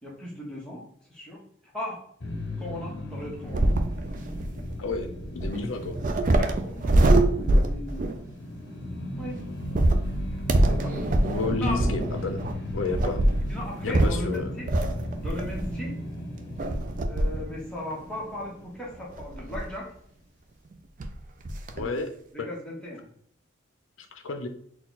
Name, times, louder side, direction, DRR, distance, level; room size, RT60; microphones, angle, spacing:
voice 1, 0.0-1.4 1.7-2.0 2.6-3.7 6.4-7.1 7.4-8.2 9.2-9.4 10.7-11.2 11.6-11.8 12.8-12.9 13.5-14.7 15.2-16.0 17.1-19.9 21.8-22.0 22.3-23.1, left 1 dB, 5° left, -5 dB, 1.2 m, -37 dB
sound 1, 2.2-19.4, left 1 dB, 55° left, 0.8 m, -38 dB
sound 2, 3.5-8.3 9.6-15.9 16.6-17.5 17.9-18.0 19.1-19.8 20.7-20.8 21.0-21.1 21.4-21.8, right 1 dB, 45° right, 0.4 m, -24 dB
voice 2, 4.8-6.0 11.2-12.4 12.7-13.2 13.8-14.6 21.7-22.1 22.4-22.5 24.0-24.5, left 3 dB, 90° left, 6 dB, 0.5 m, -31 dB
4.2 x 2.3 x 4.0 m, 0.64 s
head